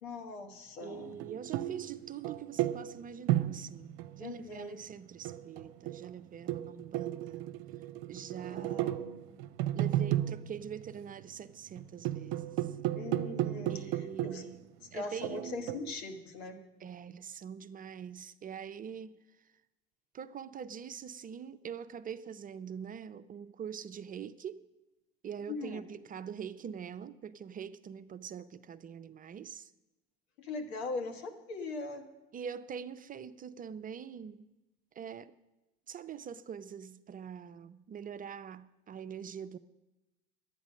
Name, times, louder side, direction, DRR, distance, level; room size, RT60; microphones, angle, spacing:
voice 1, 0.0-1.2 4.2-4.8 8.4-9.3 12.9-14.5 14.9-16.6 25.5-25.8 30.4-32.1, left 3 dB, 75° left, 1.6 m, -41 dB
voice 2, 0.8-7.4 8.1-9.0 9.7-12.8 13.7-14.6 14.9-15.6 16.8-19.2 20.1-24.6 25.2-29.7 32.3-34.5 34.9-35.3 35.9-39.6, right 7 dB, 25° right, 0.4 m, -44 dB
sound 1, 1.1-4.5 5.1-11.3 11.7-14.6 15.2-15.9, right 13 dB, 65° right, 0.6 m, -34 dB
11.0 x 9.0 x 6.3 m
hypercardioid pair, 75°, 32 cm